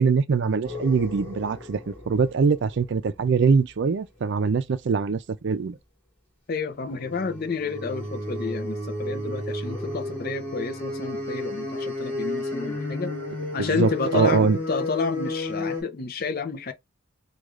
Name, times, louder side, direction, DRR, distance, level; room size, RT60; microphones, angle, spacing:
voice 1, 0.0-5.8 13.6-14.6, right 5 dB, 60° right, 0.4 m, -23 dB
sound 1, 0.6-3.6 6.8-15.8, left 2 dB, 10° left, 1.6 m, -32 dB
voice 2, 6.5-13.1 13.5-16.7, left 4 dB, 50° left, 0.5 m, -30 dB
3.1 x 2.3 x 3.6 m
head